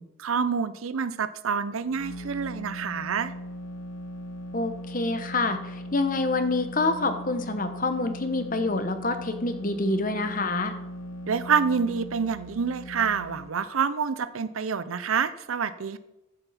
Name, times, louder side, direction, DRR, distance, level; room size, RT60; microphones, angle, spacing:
voice 1, 0.0-3.3 11.3-16.0, right 6 dB, 80° right, 14 dB, 0.6 m, -27 dB
sound 1, 1.8-13.5, equal, 75° left, 1.2 m, -39 dB
voice 2, 4.5-10.7, left 3 dB, 40° left, 8 dB, 1.0 m, -27 dB
14.5 x 8.0 x 4.2 m, 0.94 s
head